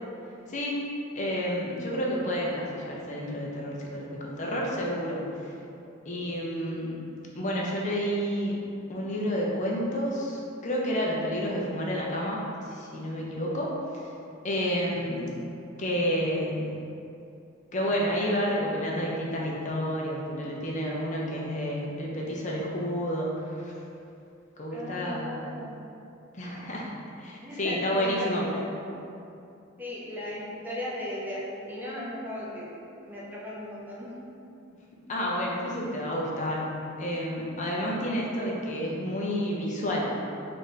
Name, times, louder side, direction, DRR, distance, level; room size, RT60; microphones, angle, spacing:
voice 1, 0.5-0.8 1.2-5.5 6.1-6.9 7.3-8.6 8.9-14.1 14.4-15.3 15.8-16.6 17.7-23.7 24.6-25.3 26.3-26.9 27.2-28.4 35.1-36.7 37.0-40.1, equal, 35° left, -3 dB, 0.5 m, -30 dB
voice 2, 24.7-25.8 27.4-28.8 29.8-32.8 33.0-34.1, left 1 dB, 10° right, -7 dB, 0.6 m, -36 dB
4.1 x 2.5 x 3.2 m, 2.7 s
head